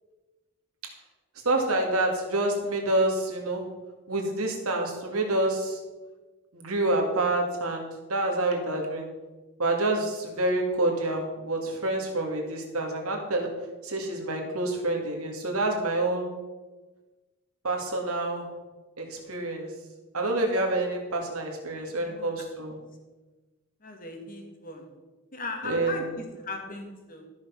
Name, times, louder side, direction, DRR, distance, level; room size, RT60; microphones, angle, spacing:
voice 1, 1.4-3.7 4.1-5.8 6.5-9.1 9.6-13.5 13.8-16.3 17.6-18.5 19.0-19.7 20.1-22.8 25.6-26.0, right 2 dB, 85° right, 1 dB, 2.4 m, -27 dB
voice 2, 21.9-22.3 23.8-24.9 25.3-27.2, left 3 dB, 40° left, 2 dB, 2.1 m, -38 dB
13.5 x 6.5 x 6.0 m, 1.2 s
head